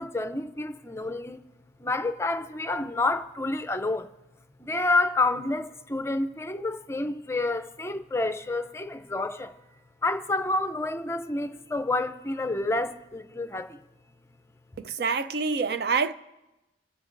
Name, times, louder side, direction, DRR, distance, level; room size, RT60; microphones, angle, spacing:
voice 1, 0.0-1.4 1.8-4.1 4.6-9.7 10.0-13.8, left 2 dB, 15° left, 0.5 m, -29 dB
voice 2, 14.8-16.1, right 5 dB, 60° right, 0.5 m, -26 dB
28.5 x 10.0 x 2.5 m
head